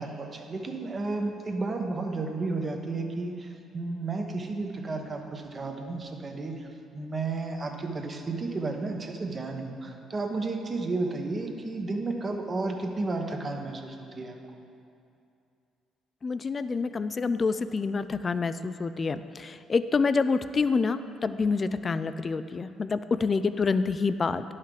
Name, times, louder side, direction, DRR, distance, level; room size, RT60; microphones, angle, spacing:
voice 1, 0.0-6.7 6.9-14.4, right 3 dB, 35° right, 3 dB, 1.1 m, -32 dB
voice 2, 16.2-24.4, left 4 dB, 35° left, 13 dB, 0.4 m, -27 dB
10.5 x 5.7 x 4.9 m, 2.5 s
supercardioid pair, 80°, 0 cm